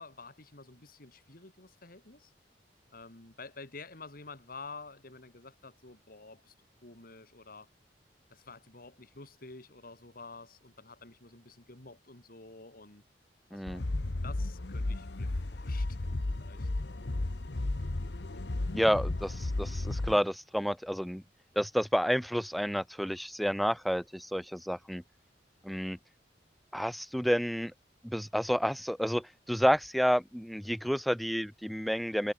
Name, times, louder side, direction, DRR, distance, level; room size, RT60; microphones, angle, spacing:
voice 1, 0.0-2.3 2.9-6.5 6.8-7.7 8.3-13.0 13.5-13.6 14.2-16.7, left 3 dB, 55° left, 3.0 m, -50 dB
voice 2, 13.5-13.8 18.7-21.2 21.6-25.0 25.6-26.0 26.7-27.7 28.0-32.3, equal, ahead, 0.5 m, -30 dB
sound 1, 13.7-20.2, left 2 dB, 75° left, 1.1 m, -34 dB
head